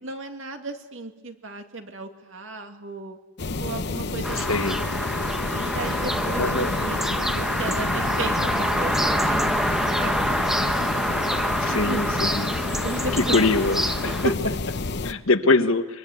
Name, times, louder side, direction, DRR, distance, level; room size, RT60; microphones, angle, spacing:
voice 1, 0.0-3.2 3.6-4.7 5.5-10.6 11.7-12.0 12.5-13.4 14.1-14.6 15.5-15.6, right 2 dB, 65° right, 5 dB, 2.3 m, -35 dB
sound 1, 3.4-15.1, left 3 dB, 50° left, 0.8 m, -29 dB
sound 2, 4.2-14.3, equal, ahead, 0.9 m, -26 dB
voice 2, 4.4-4.8 6.4-6.8 11.6-12.6 13.1-13.8 15.0-15.8, left 3 dB, 70° left, 9 dB, 1.3 m, -22 dB
23.5 x 23.0 x 9.4 m, 1.2 s
head